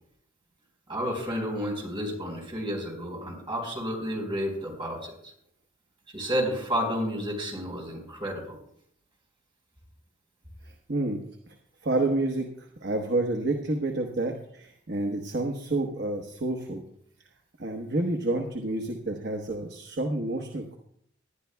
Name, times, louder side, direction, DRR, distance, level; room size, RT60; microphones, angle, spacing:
voice 1, 0.9-5.3 6.1-8.5, equal, 25° right, 0 dB, 4.1 m, -31 dB
voice 2, 10.9-11.2 11.8-16.8 17.6-20.8, right 2 dB, 55° right, 3 dB, 1.1 m, -29 dB
19.5 x 11.5 x 2.3 m, 0.69 s
head